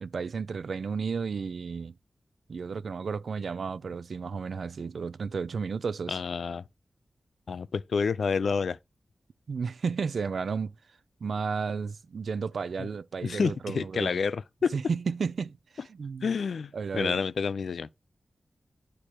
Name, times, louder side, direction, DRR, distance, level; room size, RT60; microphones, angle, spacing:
voice 1, 0.0-1.9 2.5-6.2 9.5-10.7 11.2-14.2 14.7-16.3 16.7-17.2, right 5 dB, 80° right, 0.4 m, -33 dB
voice 2, 6.1-6.6 7.5-8.8 12.8-12.9 13.2-14.7 16.2-17.9, left 5 dB, 85° left, 0.4 m, -29 dB
9.9 x 4.6 x 4.9 m
wide cardioid pair, 125°, 0 cm